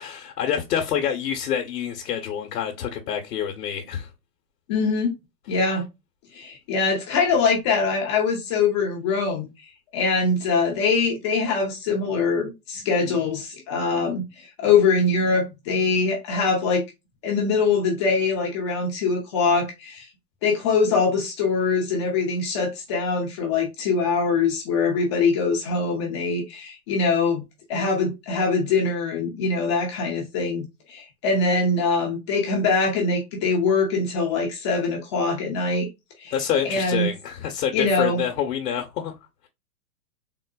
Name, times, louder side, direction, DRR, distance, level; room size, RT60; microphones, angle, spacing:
voice 1, 0.0-4.1 36.3-39.1, left 8 dB, 70° left, 0.8 m, -27 dB
voice 2, 4.7-5.1 5.5-5.9 6.3-9.5 9.9-16.8 17.2-20.1 20.4-27.4 27.7-35.9 36.2-36.3 36.6-37.1 37.7-38.2, left 4 dB, 20° left, 0.4 m, -23 dB
3.7 x 2.0 x 2.2 m
hypercardioid pair, 140°, 48 cm